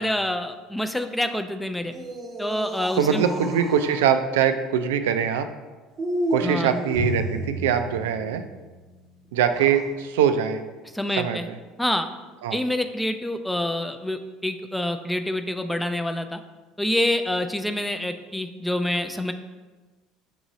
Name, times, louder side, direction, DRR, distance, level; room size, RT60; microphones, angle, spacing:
voice 1, 0.0-1.9 2.4-3.3 6.4-6.8 10.9-11.5 11.8-12.1 12.5-16.4 16.8-19.3, left 1 dB, 5° left, 7 dB, 0.4 m, -27 dB
sound 1, 1.8-4.1 6.0-7.8 9.4-9.9, right 1 dB, 35° right, 0.7 m, -32 dB
voice 2, 3.0-5.5 6.3-8.4 9.3-10.6 11.2-11.5 12.4-12.6, right 8 dB, 85° right, 9 dB, 0.3 m, -23 dB
Drum, 6.9-9.3, equal, 80° left, 1.3 m, -32 dB
6.1 x 2.6 x 3.0 m, 1.3 s
hypercardioid pair, 75°, 0 cm